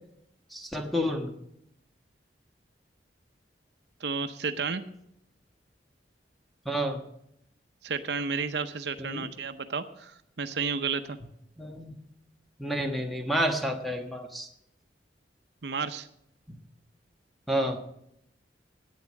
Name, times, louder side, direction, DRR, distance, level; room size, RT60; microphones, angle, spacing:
voice 1, 0.5-1.3 6.6-7.0 9.0-9.3 11.6-11.9 12.6-14.5 17.5-17.8, equal, ahead, 3 dB, 1.3 m, -29 dB
voice 2, 4.0-4.8 7.8-11.2 15.6-16.1, right 5 dB, 70° right, 9 dB, 0.7 m, -32 dB
10.5 x 9.1 x 7.6 m, 0.77 s
head